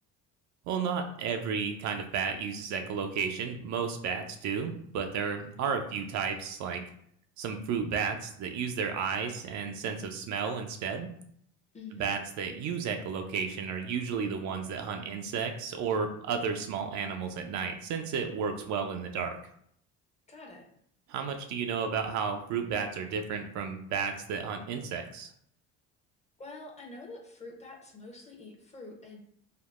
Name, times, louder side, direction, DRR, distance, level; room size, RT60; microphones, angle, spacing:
voice 1, 0.7-6.8 7.4-11.1 12.0-19.4 21.1-25.3, right 6 dB, 60° right, 5 dB, 0.5 m, -32 dB
voice 2, 11.7-12.2 20.3-20.7 26.4-29.2, left 2 dB, 20° left, 0 dB, 0.6 m, -46 dB
3.5 x 2.0 x 2.3 m, 0.67 s
supercardioid pair, 85°, 33 cm